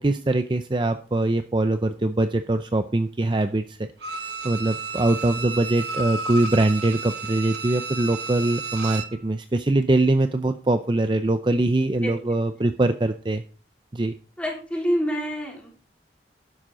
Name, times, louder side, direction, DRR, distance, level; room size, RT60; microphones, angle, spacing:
voice 1, 0.0-13.4 13.9-14.1, right 2 dB, 25° right, 9 dB, 0.5 m, -23 dB
Bowed string instrument, 4.0-9.2 9.6-9.7, right 4 dB, 80° right, 1.1 m, -32 dB
voice 2, 14.4-15.8, equal, 5° left, -1 dB, 3.2 m, -27 dB
12.5 x 9.8 x 3.8 m, 0.39 s
head